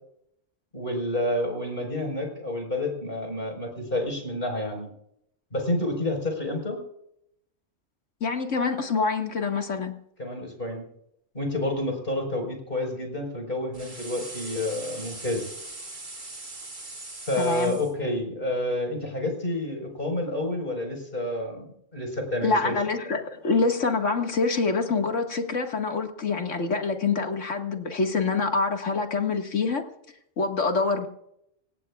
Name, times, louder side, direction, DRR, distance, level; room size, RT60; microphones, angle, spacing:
voice 1, 0.7-4.9 5.5-6.8 10.2-10.8 11.3-15.5 17.2-22.8, left 1 dB, 45° left, 3 dB, 5.0 m, -29 dB
voice 2, 8.2-10.0 17.4-17.8 22.4-29.8 30.4-31.1, left 4 dB, 75° left, 4 dB, 2.2 m, -26 dB
sound 1, 13.7-17.9, right 2 dB, 40° right, 2.4 m, -40 dB
25.5 x 18.5 x 2.4 m, 0.76 s
omnidirectional pair, 1.3 m